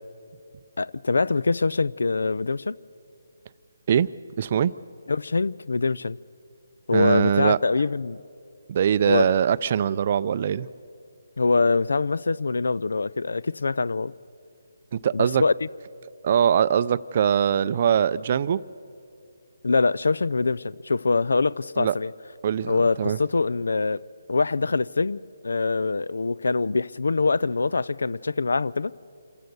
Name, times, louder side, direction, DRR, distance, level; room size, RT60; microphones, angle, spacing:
voice 1, 0.8-2.8 5.1-6.2 6.9-8.2 9.0-9.4 11.4-14.1 15.1-15.7 19.6-22.1 22.7-24.0 24.3-28.9, left 3 dB, 80° left, 0.4 m, -24 dB
voice 2, 4.4-4.7 6.9-7.6 8.7-10.7 14.9-15.4 16.2-18.6 21.8-21.9 22.4-23.2, right 8 dB, 40° right, 0.4 m, -22 dB
27.0 x 15.0 x 6.8 m
hypercardioid pair, 160°, 0 cm